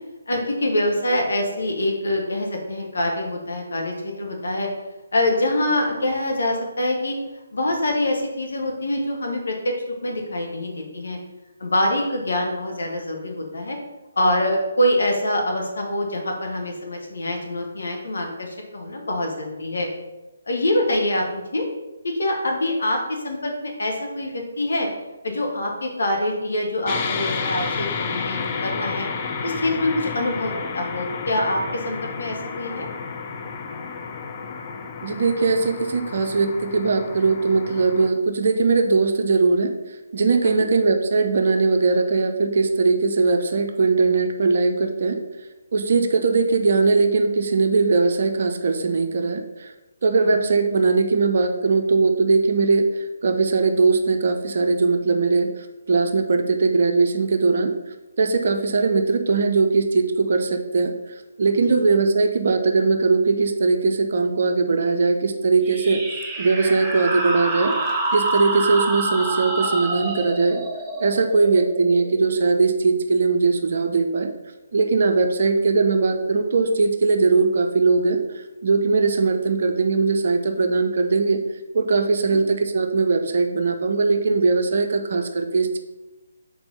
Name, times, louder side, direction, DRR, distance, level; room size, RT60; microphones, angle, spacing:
voice 1, 0.3-4.7 5.1-7.2 7.5-9.7 10.0-11.2 11.6-13.8 14.2-19.9 20.5-21.6 22.0-24.9 25.2-29.1 29.4-32.9 40.4-40.6 50.2-50.3 82.2-82.4, left 1 dB, 65° left, 2 dB, 1.5 m, -25 dB
sound 1, 26.9-38.1, left 5 dB, 30° left, 0.6 m, -31 dB
voice 2, 35.0-45.2 45.7-49.7 50.0-55.5 55.9-57.7 58.2-60.9 61.4-66.0 66.4-67.8 68.1-70.6 71.0-74.3 74.7-78.2 78.6-81.4 81.7-85.8, right 4 dB, 50° right, 6 dB, 0.7 m, -20 dB
sound 2, 65.6-72.9, right 2 dB, 10° right, 0.9 m, -27 dB
4.4 x 4.3 x 5.5 m, 1.1 s
figure-of-eight pair, 140°, 0 cm